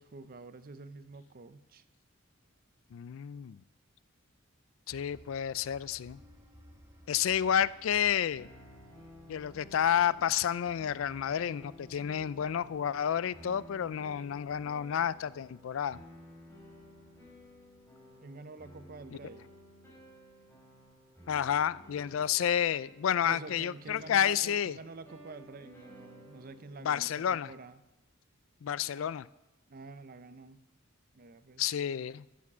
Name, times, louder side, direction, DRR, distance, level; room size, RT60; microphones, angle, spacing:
voice 1, 0.0-1.8 18.2-19.5 23.2-27.8 29.7-30.6 31.1-31.6, right 3 dB, 45° right, 12 dB, 0.6 m, -48 dB
voice 2, 2.9-3.6 4.9-6.2 7.1-8.5 9.3-16.0 21.3-24.7 26.8-27.5 28.6-29.3 31.6-32.2, left 9 dB, 70° left, 19 dB, 0.3 m, -30 dB
sound 1, 4.9-17.9, equal, 15° right, 1.5 m, -60 dB
sound 2, 8.4-27.6, equal, 10° left, 4.6 m, -55 dB
12.5 x 8.5 x 6.1 m, 0.96 s
head